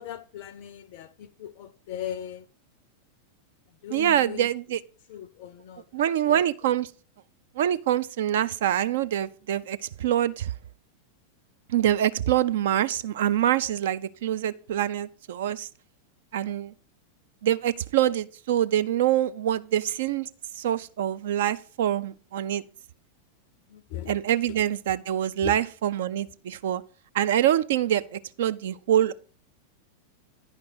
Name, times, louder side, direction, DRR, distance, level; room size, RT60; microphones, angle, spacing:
voice 1, 0.0-2.5 3.8-4.5 5.1-6.4 23.7-24.2 25.4-25.6, left 10 dB, 50° left, 0.4 m, -39 dB
voice 2, 3.9-4.8 5.9-6.9 7.6-10.5 11.7-15.7 16.3-16.7 17.4-20.3 20.6-22.6 24.1-26.8 27.1-29.1, right 11 dB, 55° right, 0.3 m, -25 dB
9.8 x 5.1 x 4.6 m
figure-of-eight pair, 90°, 0 cm